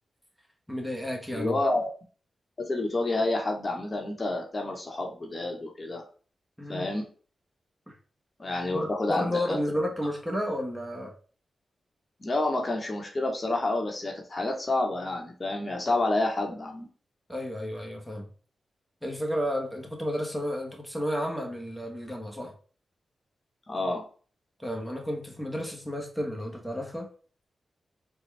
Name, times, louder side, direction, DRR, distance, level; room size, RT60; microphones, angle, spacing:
voice 1, 0.7-1.6 6.6-6.9 7.9-8.0 8.7-11.1 17.3-18.2 19.0-22.5 24.6-27.1, equal, 5° right, 1.3 m, -32 dB
voice 2, 1.3-1.9 2.6-6.0 6.7-7.1 8.4-9.6 12.2-16.9 23.7-24.0, left 2 dB, 45° left, 1.1 m, -29 dB
4.2 x 2.3 x 3.3 m
supercardioid pair, 40°, 0 cm